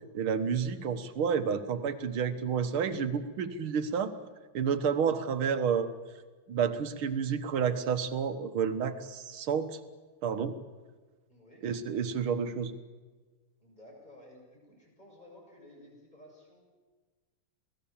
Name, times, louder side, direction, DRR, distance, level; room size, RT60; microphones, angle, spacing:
voice 1, 0.1-4.2 4.5-5.9 6.5-9.8 10.2-10.5 11.6-12.7, right 7 dB, 80° right, 10 dB, 2.1 m, -30 dB
voice 2, 11.3-11.7 13.6-16.6, left 1 dB, 20° left, -1 dB, 7.2 m, -54 dB
28.0 x 18.5 x 7.3 m, 1.3 s
omnidirectional pair, 2.3 m